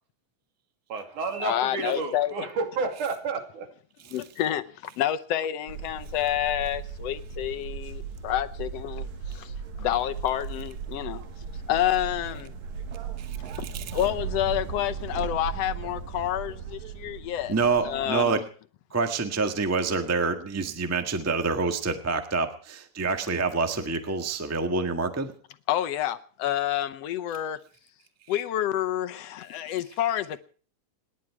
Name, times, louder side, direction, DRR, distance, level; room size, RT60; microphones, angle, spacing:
voice 1, 0.9-3.7, right 4 dB, 85° right, 4.1 m, -31 dB
voice 2, 1.4-2.5 4.1-4.6 5.0-11.2 11.7-12.5 13.6-13.7 13.9-18.4 25.7-27.6 28.3-30.4, left 12 dB, 70° left, 1.7 m, -29 dB
sound 1, 5.7-18.3, right 7 dB, 70° right, 2.9 m, -37 dB
voice 3, 13.2-13.8 17.5-18.4 18.9-25.3, right 4 dB, 20° right, 0.4 m, -27 dB
27.5 x 11.0 x 4.8 m
omnidirectional pair, 3.5 m